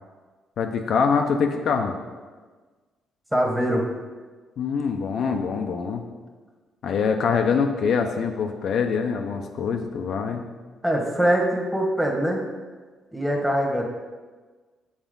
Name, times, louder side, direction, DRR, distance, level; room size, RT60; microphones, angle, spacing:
voice 1, 0.6-2.0 4.6-6.0 6.8-10.5, left 5 dB, 70° left, 4 dB, 0.5 m, -24 dB
voice 2, 3.3-3.8 10.8-12.4 13.1-13.8, right 1 dB, ahead, -1 dB, 1.2 m, -23 dB
7.2 x 4.4 x 3.8 m, 1.4 s
cardioid pair, 90°, 0 cm